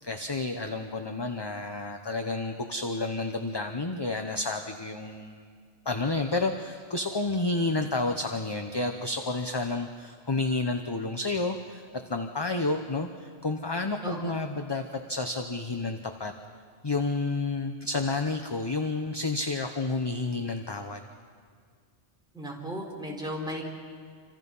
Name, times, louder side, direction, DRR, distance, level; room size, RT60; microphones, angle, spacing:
voice 1, 0.0-5.5 5.8-16.3 16.8-21.0, left 3 dB, 25° left, 6 dB, 0.8 m, -30 dB
voice 2, 14.0-14.4 22.3-23.6, equal, 5° right, -2 dB, 4.9 m, -35 dB
28.5 x 26.0 x 5.6 m, 2.1 s
omnidirectional pair, 1.2 m